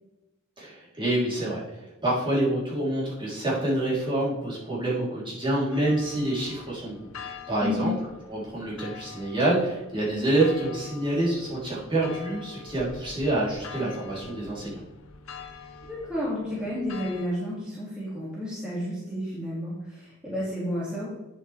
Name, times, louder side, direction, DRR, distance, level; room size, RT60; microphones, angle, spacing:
voice 1, 0.6-7.9 8.3-14.8, right 1 dB, 25° right, -7 dB, 3.2 m, -27 dB
sound 1, 5.7-17.3, left 5 dB, 70° left, 0.9 m, -44 dB
voice 2, 7.6-7.9 15.9-21.1, left 1 dB, 5° right, -8 dB, 2.1 m, -31 dB
9.0 x 7.4 x 3.3 m, 1.0 s
head